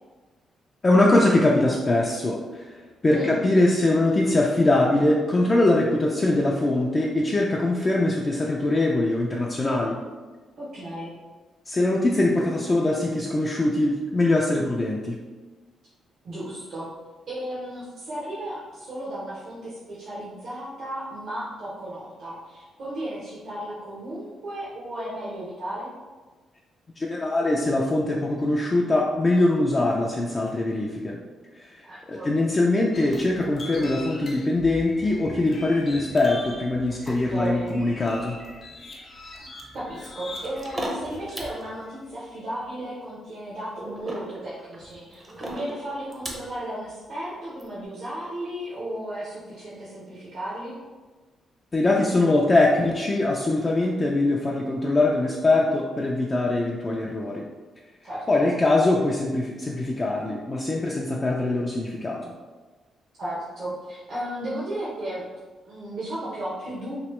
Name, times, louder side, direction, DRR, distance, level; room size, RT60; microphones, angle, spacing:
voice 1, 0.8-2.7 3.0-10.0 11.7-15.2 27.0-31.2 31.6-31.8 32.1-38.4 51.7-57.5 58.3-62.2, left 2 dB, 30° left, -2 dB, 0.4 m, -22 dB
voice 2, 3.1-3.4 10.6-11.1 16.2-16.9 17.3-25.9 31.9-32.3 37.1-37.8 39.7-50.7 58.0-58.5 63.2-65.2 65.6-67.0, right 1 dB, 65° right, -8 dB, 0.9 m, -34 dB
sound 1, 32.9-41.8, left 2 dB, 50° left, 0.7 m, -42 dB
sound 2, 40.4-41.7 43.8-46.6 47.6-47.7, right 1 dB, 30° right, 0.7 m, -35 dB
3.0 x 2.9 x 3.1 m, 1.3 s
cardioid pair, 90°, 0 cm